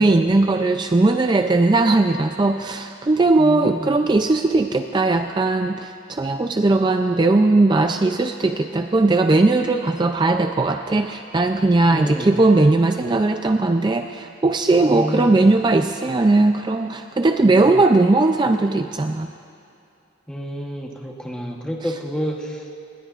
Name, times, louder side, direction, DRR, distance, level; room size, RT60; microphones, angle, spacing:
voice 1, 0.0-19.3, right 2 dB, 20° right, 6 dB, 0.3 m, -18 dB
voice 2, 3.4-4.0 11.9-12.4 14.8-15.4 17.5-17.7 20.3-22.8, equal, 5° left, -1 dB, 1.0 m, -29 dB
26.5 x 20.5 x 2.4 m, 2.5 s
head